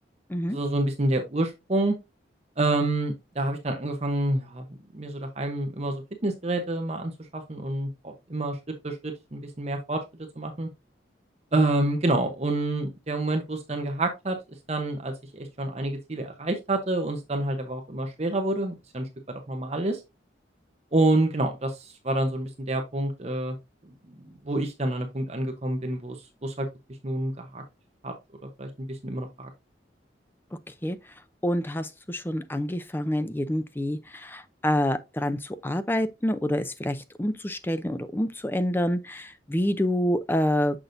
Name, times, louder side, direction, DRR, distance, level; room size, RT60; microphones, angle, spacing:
voice 1, 0.5-1.9 2.6-4.7 4.9-8.6 8.8-10.0 10.4-10.7 11.5-14.4 14.7-20.0 20.9-23.6 24.1-26.7 27.0-27.6 28.0-28.1 28.6-29.5, right 2 dB, 35° right, 0.9 m, -28 dB
voice 2, 31.4-40.8, left 1 dB, 10° left, 0.5 m, -27 dB
6.6 x 6.0 x 2.6 m
head